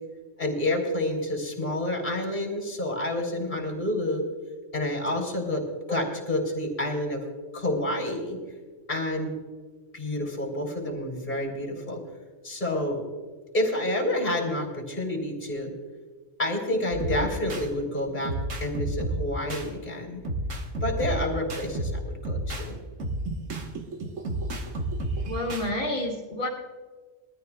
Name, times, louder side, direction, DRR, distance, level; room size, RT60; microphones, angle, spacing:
voice 1, 0.4-4.2 4.7-5.6 5.9-7.2 7.5-8.4 8.9-9.3 9.9-12.0 12.4-13.0 13.5-15.7 16.4-18.3 18.6-20.2 20.8-22.8, left 1 dB, 35° left, 1 dB, 3.5 m, -29 dB
sound 1, 16.9-17.7 18.2-19.7 20.2-22.7 23.0-25.7, right 1 dB, 70° right, 1.7 m, -31 dB
voice 2, 25.2-26.5, left 1 dB, 65° left, -4 dB, 2.1 m, -29 dB
22.5 x 14.0 x 2.3 m, 1.4 s
omnidirectional pair, 1.4 m